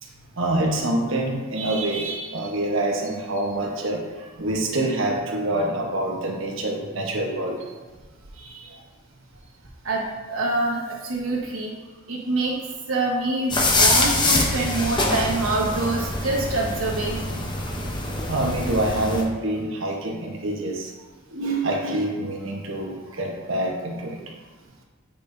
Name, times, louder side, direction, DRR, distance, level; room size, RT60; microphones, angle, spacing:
voice 1, 0.0-7.7 8.3-8.8 18.3-20.9 21.3-24.2, right 1 dB, 65° right, 0 dB, 1.1 m, -26 dB
voice 2, 9.8-11.7 12.1-12.6 12.9-17.2, right 2 dB, 85° right, -1 dB, 1.3 m, -25 dB
sound 1, 13.5-19.2, left 2 dB, 20° left, 0.8 m, -24 dB
9.1 x 5.3 x 2.7 m, 1.3 s
head